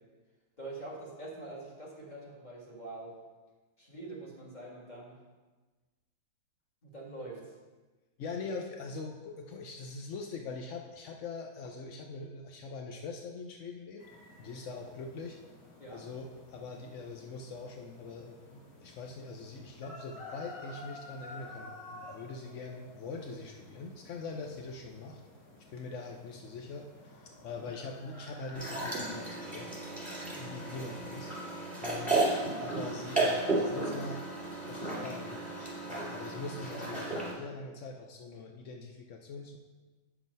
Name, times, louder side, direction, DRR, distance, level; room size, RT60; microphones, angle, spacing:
voice 1, 0.6-3.1 3.8-5.2 6.8-7.4 15.8-16.1 27.6-27.7, right 2 dB, 20° left, -4 dB, 1.9 m, -44 dB
voice 2, 8.2-14.0 14.4-15.4 15.9-25.2 25.7-29.7 30.2-31.3 31.8-32.2 32.6-34.2 34.7-39.6, left 3 dB, 70° left, 2 dB, 0.7 m, -43 dB
sound 1, 14.0-29.2, left 2 dB, 50° left, 2.0 m, -51 dB
sound 2, 28.5-37.3, right 2 dB, 5° right, 2.5 m, -34 dB
8.5 x 5.9 x 5.4 m, 1.3 s
omnidirectional pair, 2.2 m